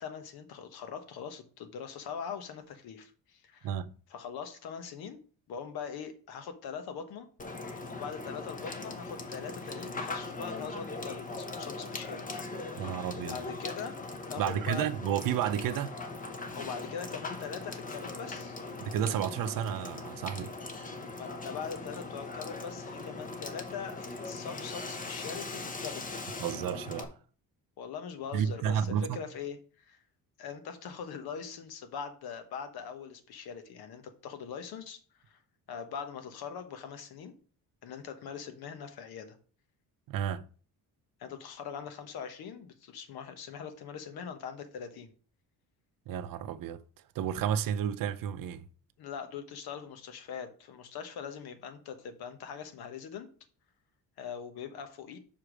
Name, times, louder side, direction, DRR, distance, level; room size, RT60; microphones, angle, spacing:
voice 1, 0.0-3.8 4.1-5.2 5.5-7.3 8.0-12.4 13.1-14.0 14.3-14.9 16.5-18.6 21.1-26.2 27.8-30.0 30.4-35.0 35.3-35.4 35.7-37.3 37.8-39.4 41.2-45.1 49.0-53.3 54.2-55.2, left 7 dB, 75° left, 1.2 m, -42 dB
Water / Water tap faucet / Sink (filling or washing), 7.4-27.0, left 3 dB, 20° left, 0.8 m, -40 dB
voice 2, 12.8-13.4 14.4-16.0 18.8-20.5 26.4-27.1 28.3-29.2 40.1-40.5 46.1-46.8 47.2-48.7, right 9 dB, 60° right, 0.6 m, -31 dB
5.7 x 4.9 x 5.0 m
cardioid pair, 150°, 37 cm